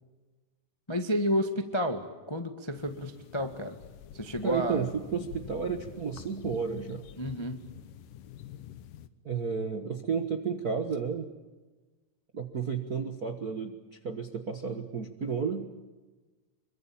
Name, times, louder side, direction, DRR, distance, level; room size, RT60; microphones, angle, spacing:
voice 1, 0.9-3.8 4.1-4.9 7.2-7.6, equal, 25° left, 6 dB, 0.6 m, -31 dB
sound 1, 2.8-9.1, left 10 dB, 80° left, 2.7 m, -48 dB
voice 2, 4.4-7.0 9.2-11.3 12.3-13.8 14.0-15.7, right 5 dB, 55° right, 7 dB, 1.0 m, -32 dB
26.0 x 24.0 x 8.7 m, 1.2 s
omnidirectional pair, 3.8 m